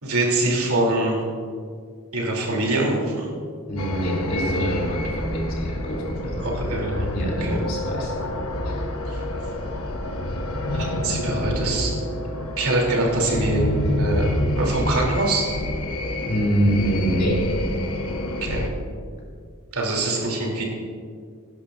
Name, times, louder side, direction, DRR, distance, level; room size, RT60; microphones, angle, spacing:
voice 1, 0.0-1.2 2.1-3.3 6.4-7.1 7.4-7.6 9.0-9.2 10.7-11.9 12.6-13.7 13.9-14.3 14.6-15.5 18.4-18.7 19.7-20.6, right 2 dB, 85° right, -2 dB, 3.1 m, -24 dB
voice 2, 3.7-6.5 7.1-8.1 16.3-17.4, equal, 45° left, -3 dB, 2.8 m, -25 dB
sound 1, 3.8-18.7, left 1 dB, 80° left, 1.0 m, -28 dB
17.5 x 11.0 x 2.5 m, 2.1 s
head